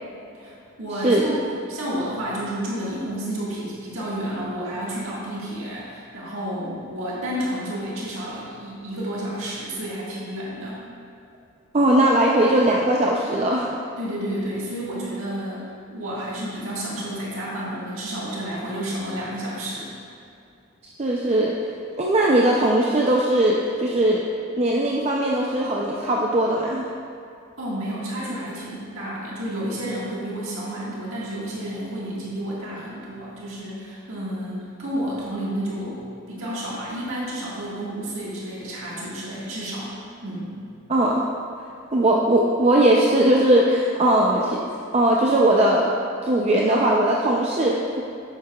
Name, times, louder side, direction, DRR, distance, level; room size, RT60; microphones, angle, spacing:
voice 1, 0.4-10.8 14.0-19.9 27.6-39.9 40.2-40.6, right 1 dB, 85° right, -7 dB, 1.7 m, -31 dB
voice 2, 1.0-1.3 11.7-13.7 20.8-21.5 22.0-24.3 24.6-26.9 40.9-41.3 41.9-44.6 44.9-45.9 46.2-48.0, right 1 dB, 30° right, -2 dB, 0.5 m, -19 dB
9.4 x 7.7 x 2.3 m, 2.5 s
head